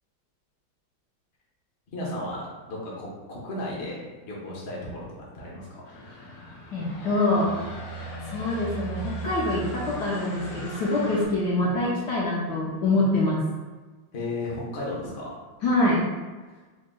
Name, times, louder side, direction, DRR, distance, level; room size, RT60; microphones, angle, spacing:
voice 1, 1.9-5.0 5.3-5.7 6.1-6.2 14.1-15.4, left 1 dB, 55° left, -5 dB, 0.7 m, -34 dB
sound 1, 5.8-11.2, right 2 dB, 85° left, 1.7 m, -38 dB
voice 2, 6.7-7.5 8.3-13.4 15.6-16.0, left 2 dB, 70° left, -5 dB, 1.0 m, -25 dB
3.8 x 2.1 x 3.7 m, 1.3 s
omnidirectional pair, 2.3 m